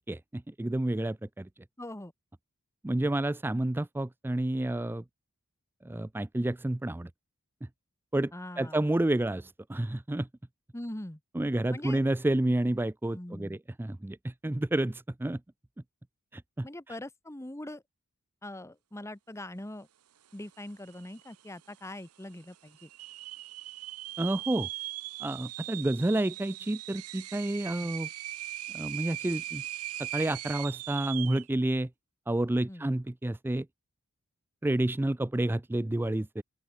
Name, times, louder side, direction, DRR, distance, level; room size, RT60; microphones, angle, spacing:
voice 1, 0.0-1.5 2.8-5.0 5.8-7.1 8.1-8.3 8.6-10.3 11.4-15.4 16.3-16.7 24.2-24.7 25.2-28.1 28.7-29.6 30.0-31.9 32.3-33.7 34.6-36.4, right 1 dB, 10° right, 0.4 m, -30 dB
voice 2, 1.8-2.1 8.3-8.8 10.7-11.2 11.7-12.0 13.1-13.6 16.6-17.8 18.4-19.9 20.3-22.9 27.8-27.9 32.7-32.9, left 1 dB, 15° left, 1.2 m, -42 dB
sound 1, 20.6-20.7 20.9-21.5 22.0-22.1 22.8-31.5, right 15 dB, 80° right, 0.8 m, -39 dB
open air
head